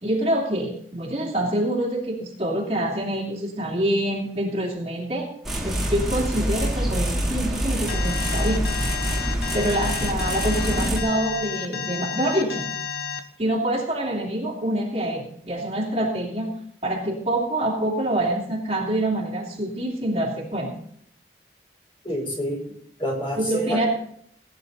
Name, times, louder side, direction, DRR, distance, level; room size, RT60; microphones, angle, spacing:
voice 1, 0.0-5.3 5.6-8.7 9.5-12.7 13.4-16.6 16.8-20.7 23.4-23.9, right 1 dB, 35° right, -1 dB, 2.8 m, -26 dB
sound 1, 5.4-11.0, equal, ahead, 2.8 m, -26 dB
Alarm, 7.9-13.2, left 6 dB, 60° left, 1.3 m, -31 dB
voice 2, 22.0-22.7 23.0-23.9, equal, 30° left, 0 dB, 4.6 m, -28 dB
18.0 x 10.0 x 4.0 m, 0.65 s
head